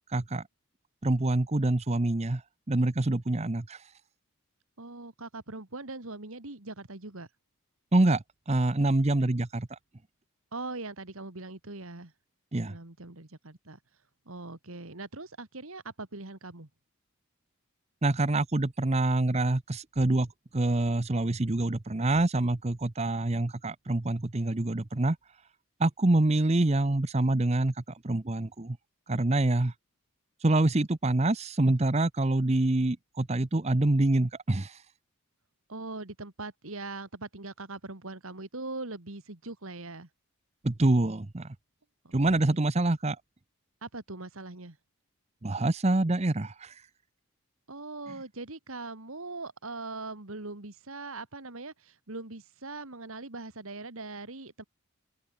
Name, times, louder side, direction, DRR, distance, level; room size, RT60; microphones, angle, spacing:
voice 1, 0.1-0.4 1.0-2.4 2.7-3.9 7.9-9.8 12.5-12.7 18.0-20.3 20.5-25.2 25.8-27.7 28.0-28.8 29.1-29.7 30.4-34.8 40.6-41.5 42.1-43.2 45.4-46.8, right 2 dB, 30° right, 0.7 m, -26 dB
voice 2, 4.8-7.3 10.5-12.1 12.7-13.8 14.3-16.7 35.7-40.1 42.0-42.6 43.8-44.8 47.7-54.6, right 3 dB, 70° right, 2.3 m, -41 dB
open air
head